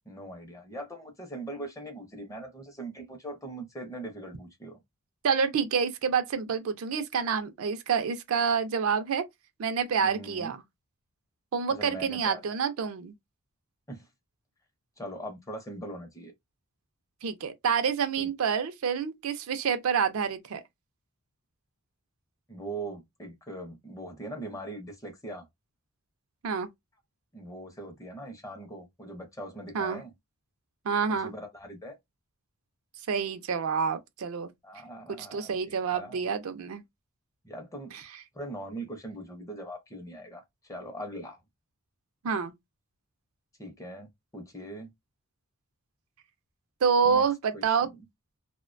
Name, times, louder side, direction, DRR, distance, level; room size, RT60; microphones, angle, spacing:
voice 1, 0.1-4.8 10.0-10.5 11.7-12.7 13.9-14.1 15.0-16.3 18.2-18.3 22.5-25.5 27.3-30.1 31.1-32.0 34.6-36.3 37.4-37.9 38.3-41.4 43.6-44.9 47.0-47.2 47.5-47.9, right 1 dB, 15° left, 0.5 m, -41 dB
voice 2, 5.2-9.2 9.6-10.6 11.5-13.1 17.2-20.6 26.4-26.7 29.7-30.0 30.8-31.3 33.1-34.5 35.2-36.8 42.2-42.5 46.8-47.9, right 6 dB, 65° right, 0.4 m, -28 dB
2.4 x 2.1 x 2.4 m
head